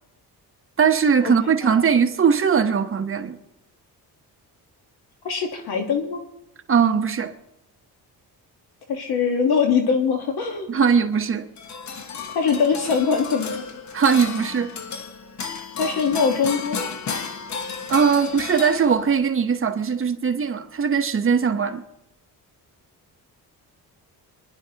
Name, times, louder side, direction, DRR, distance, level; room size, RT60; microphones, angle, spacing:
voice 1, 0.8-3.4 6.7-7.3 10.7-11.5 13.9-14.7 17.9-21.8, right 6 dB, 35° right, 1.0 m, -20 dB
voice 2, 5.2-6.2 8.9-10.7 12.3-13.6 15.8-16.8, left 5 dB, 80° left, 1.5 m, -22 dB
sound 1, 11.6-19.2, left 5 dB, 50° left, 1.0 m, -33 dB
25.5 x 11.0 x 2.9 m
cardioid pair, 115°, 37 cm